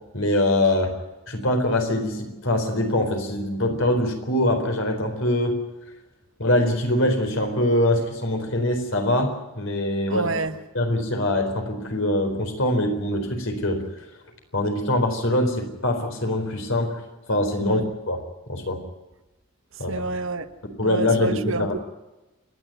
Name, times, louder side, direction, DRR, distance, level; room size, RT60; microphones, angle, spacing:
voice 1, 0.1-0.9 1.3-5.6 6.4-10.3 10.7-13.8 14.5-17.0 17.3-17.8 18.1-18.2 18.5-18.8 19.8-20.0 20.8-21.8, left 1 dB, 65° left, 4.2 m, -23 dB
voice 2, 10.1-10.6 17.6-17.8 19.7-20.5 20.8-21.8, right 3 dB, 65° right, 1.2 m, -29 dB
28.0 x 10.5 x 9.2 m
head